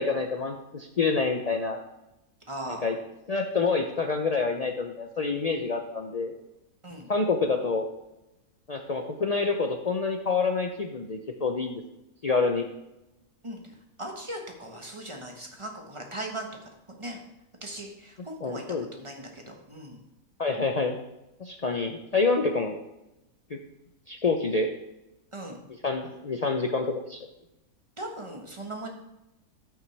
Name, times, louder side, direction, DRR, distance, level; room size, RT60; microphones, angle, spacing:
voice 1, 0.0-1.8 2.7-3.0 3.3-6.3 7.1-7.9 8.7-11.8 12.2-12.7 18.4-18.9 20.4-21.0 21.4-22.8 23.5-23.6 24.1-24.7 25.8-27.3, left 4 dB, 70° left, 3 dB, 0.3 m, -27 dB
voice 2, 2.5-2.9 6.8-7.1 13.4-13.7 14.0-16.5 16.9-17.2 17.6-18.6 18.9-20.0 25.3-25.6 28.0-28.9, right 1 dB, 20° right, 1 dB, 1.1 m, -38 dB
13.5 x 5.8 x 3.3 m, 0.93 s
omnidirectional pair, 1.6 m